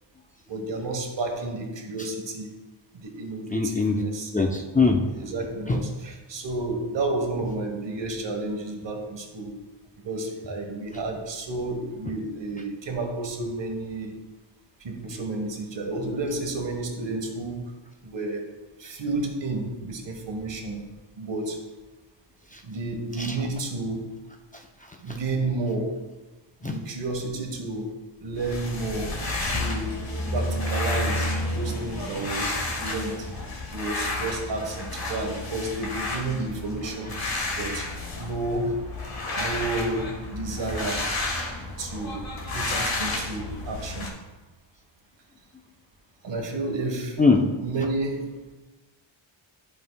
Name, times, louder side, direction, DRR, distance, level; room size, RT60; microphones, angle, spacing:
voice 1, 0.5-2.6 2.9-4.3 4.9-9.5 10.0-14.2 14.8-17.7 18.0-18.5 18.8-20.9 21.2-21.6 22.6-24.1 25.0-26.0 26.6-30.0 30.3-33.3 33.7-37.2 37.6-38.8 39.4-41.1 41.8-44.1 46.2-47.2 47.6-48.5, right 2 dB, 60° right, 3 dB, 1.3 m, -31 dB
voice 2, 3.5-4.0 4.3-5.3 5.7-5.8 22.5-22.6 23.2-23.4 24.5-25.2 26.6-26.8 47.2-47.4, left 4 dB, 15° left, 1 dB, 0.5 m, -23 dB
sound 1, 28.3-44.1, left 2 dB, 45° left, 1.5 m, -31 dB
11.0 x 5.4 x 2.2 m, 1.1 s
wide cardioid pair, 115°, 49 cm